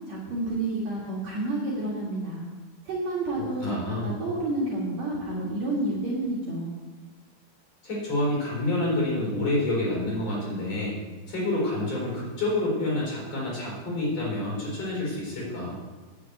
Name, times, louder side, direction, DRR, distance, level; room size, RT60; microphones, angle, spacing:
voice 1, 0.1-2.5 2.9-6.7, right 2 dB, 50° right, -5 dB, 2.7 m, -30 dB
voice 2, 3.6-4.2 7.8-11.0 11.3-15.7, left 1 dB, 40° left, -4 dB, 4.8 m, -28 dB
9.9 x 6.7 x 8.3 m, 1.3 s
omnidirectional pair, 4.7 m